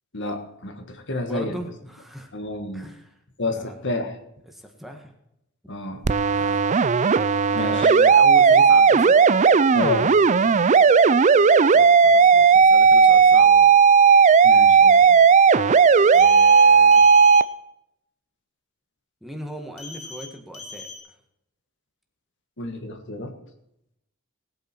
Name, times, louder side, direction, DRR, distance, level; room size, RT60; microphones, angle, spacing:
voice 1, 0.1-1.6 2.3-2.9 3.4-4.1 5.7-6.0 7.5-7.9 9.7-10.1 14.4-15.2 22.6-23.3, left 2 dB, 55° left, 6 dB, 1.6 m, -30 dB
voice 2, 1.2-2.3 2.7-3.2 3.5-3.8 4.5-5.1 6.3-6.7 7.5-9.2 10.4-10.6 11.7-13.8 16.1-17.1 19.2-20.9, equal, ahead, 3 dB, 1.6 m, -38 dB
sound 1, 6.0-17.4, right 6 dB, 35° right, 0.4 m, -15 dB
sound 2, 16.1-16.6 16.9-17.4 19.8-20.3 20.5-21.0, left 4 dB, 85° left, 3.5 m, -39 dB
19.0 x 8.9 x 4.5 m, 0.81 s
head